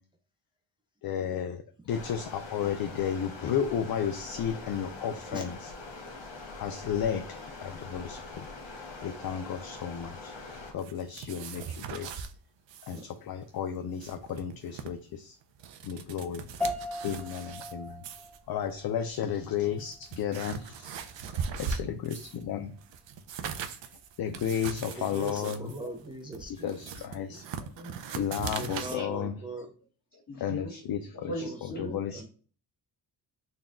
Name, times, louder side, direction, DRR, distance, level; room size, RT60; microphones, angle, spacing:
voice 1, 1.0-5.7 6.6-7.3 7.6-8.5 9.0-10.3 10.7-12.1 12.9-15.3 15.8-16.5 17.0-18.0 18.5-21.0 21.3-22.7 24.2-25.7 26.5-27.4 28.1-29.3 30.4-31.3 31.8-32.3, left 8 dB, 55° left, 6 dB, 0.5 m, -33 dB
Stream, 1.9-10.7, left 3 dB, 80° left, 1.3 m, -43 dB
sound 1, 10.8-12.3 12.7-13.0 13.3-13.4 13.8-14.9 15.4-17.7 18.0-18.4 19.1-19.2 19.7-22.4 22.8-29.0, right 6 dB, 80° right, 0.6 m, -39 dB
sound 2, 16.6-26.2, left 2 dB, 5° left, 0.7 m, -42 dB
voice 2, 24.8-26.7 28.5-29.7 31.4-32.3, right 2 dB, 10° right, 2 dB, 0.4 m, -40 dB
voice 3, 25.7-26.1 26.5-29.4 30.1-32.3, equal, 40° left, -3 dB, 1.9 m, -43 dB
4.1 x 2.3 x 3.6 m, 0.40 s
wide cardioid pair, 125°, 44 cm